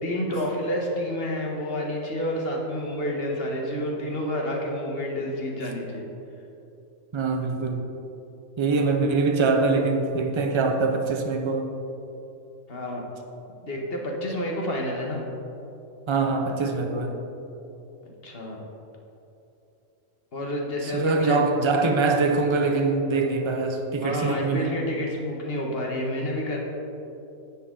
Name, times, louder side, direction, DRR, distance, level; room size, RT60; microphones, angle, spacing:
voice 1, 0.0-6.0 12.7-13.0 13.6-15.2 18.0-18.6 20.3-21.4 24.0-26.6, left 1 dB, 45° left, -1 dB, 1.4 m, -29 dB
voice 2, 7.1-7.8 8.6-11.7 16.1-17.1 20.8-24.7, right 3 dB, 35° right, 4 dB, 0.4 m, -23 dB
9.8 x 7.4 x 3.8 m, 2.8 s
omnidirectional pair, 1.5 m